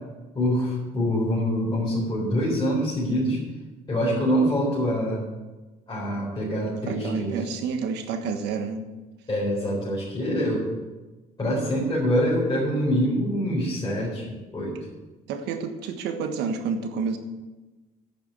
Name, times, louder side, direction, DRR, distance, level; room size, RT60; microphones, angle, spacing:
voice 1, 0.3-3.4 3.9-5.2 5.9-7.4 9.3-10.7 11.4-14.8, equal, 25° left, -7 dB, 4.1 m, -25 dB
voice 2, 6.9-8.8 15.3-17.2, right 5 dB, 85° right, 7 dB, 1.4 m, -29 dB
10.5 x 7.0 x 8.1 m, 1.2 s
cardioid pair, 110°, 17 cm